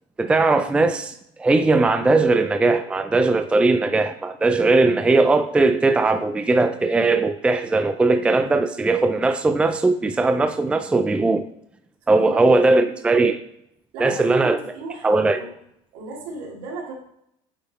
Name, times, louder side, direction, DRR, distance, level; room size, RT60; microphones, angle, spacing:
voice 1, 0.2-1.1 1.4-11.4 12.1-13.4 14.0-14.6 15.0-15.4, right 3 dB, 10° right, 0.3 m, -19 dB
voice 2, 12.1-12.7 12.9-13.2 13.9-15.6 15.9-16.9, right 3 dB, 75° right, 2.2 m, -36 dB
8.8 x 3.5 x 4.1 m
supercardioid pair, 110°, 14 cm